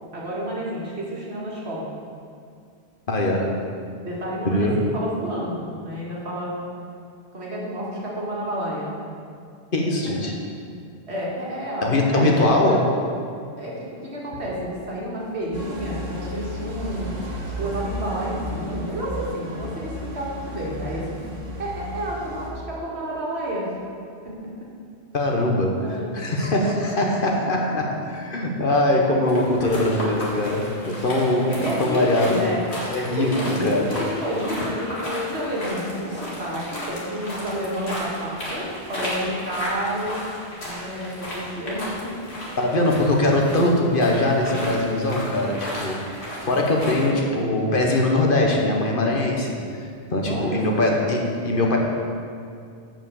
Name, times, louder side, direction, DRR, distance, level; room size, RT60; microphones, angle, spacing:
voice 1, 0.1-1.9 4.0-6.6 7.3-8.9 11.1-12.8 13.6-17.1 17.6-21.2 21.6-23.7 24.2-24.5 25.8-26.5 28.9-29.1 31.3-32.6 33.1-40.2 40.6-42.2 42.6-43.2 46.9-47.1 50.3-51.0, equal, 70° right, -5 dB, 2.2 m, -30 dB
voice 2, 3.1-3.6 4.4-4.9 9.7-10.3 11.8-12.8 25.1-32.4 32.9-33.9 42.6-46.1 46.4-49.7 50.1-51.8, left 1 dB, 50° left, 0 dB, 1.2 m, -22 dB
sound 1, 15.5-22.5, equal, 40° right, 1.4 m, -33 dB
sound 2, 29.2-47.1, left 1 dB, 70° left, 2.2 m, -34 dB
sound 3, 32.7-36.3, left 1 dB, ahead, 2.6 m, -38 dB
7.4 x 6.0 x 6.9 m, 2.3 s
omnidirectional pair, 1.1 m